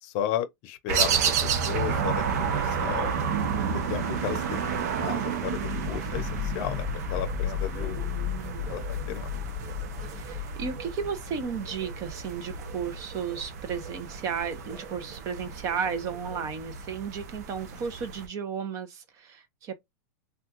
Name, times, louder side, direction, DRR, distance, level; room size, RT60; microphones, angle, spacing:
voice 1, 0.0-3.2 3.7-8.1 8.7-9.4, left 10 dB, 45° left, 0.7 m, -34 dB
sound 1, 0.9-18.3, right 6 dB, 70° right, 0.7 m, -31 dB
sound 2, 4.4-16.5, right 4 dB, 5° right, 1.6 m, -51 dB
sound 3, 5.4-12.1, left 12 dB, 20° left, 0.3 m, -35 dB
voice 2, 7.8-8.7 10.1-19.7, right 6 dB, 35° right, 0.8 m, -34 dB
3.5 x 2.4 x 2.9 m
supercardioid pair, 140°, 9 cm